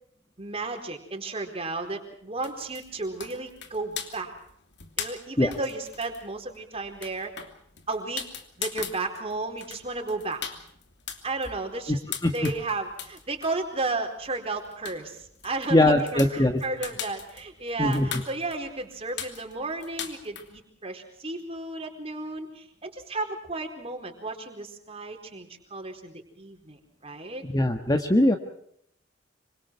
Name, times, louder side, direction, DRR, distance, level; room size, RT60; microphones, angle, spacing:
voice 1, 0.4-4.3 5.0-7.3 7.9-8.2 8.6-10.4 11.2-12.0 12.3-27.5, right 3 dB, 30° right, 4 dB, 4.4 m, -33 dB
sound 1, 2.4-20.6, left 8 dB, 65° left, 3.0 m, -41 dB
voice 2, 15.7-16.6 17.8-18.2 27.4-28.4, left 1 dB, 20° left, 5 dB, 1.6 m, -21 dB
26.5 x 25.5 x 4.7 m, 0.68 s
head